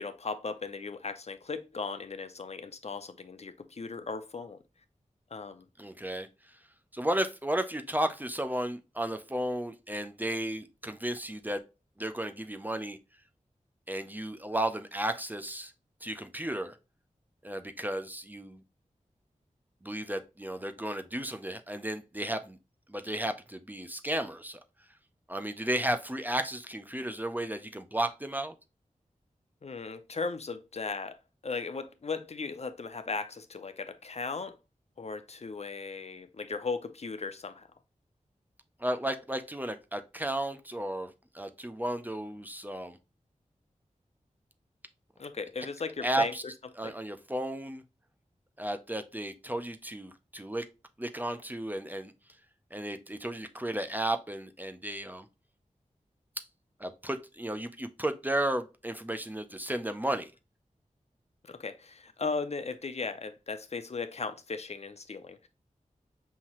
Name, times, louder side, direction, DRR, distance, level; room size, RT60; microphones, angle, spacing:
voice 1, 0.0-4.6 5.3-5.7 29.6-31.2 31.4-34.6 35.0-37.7 45.2-46.3 46.8-46.9 61.4-65.5, left 4 dB, 55° left, 0.6 m, -37 dB
voice 2, 5.8-6.3 6.9-11.6 12.0-13.0 13.9-15.7 16.0-16.8 17.4-18.6 19.8-22.6 22.9-24.6 25.3-28.5 38.8-43.0 46.0-46.4 46.8-47.8 48.6-50.6 51.0-52.1 52.7-55.3 56.4-56.5 56.8-60.3, right 1 dB, 15° right, 0.5 m, -33 dB
5.7 x 2.8 x 3.0 m
wide cardioid pair, 80°, 13 cm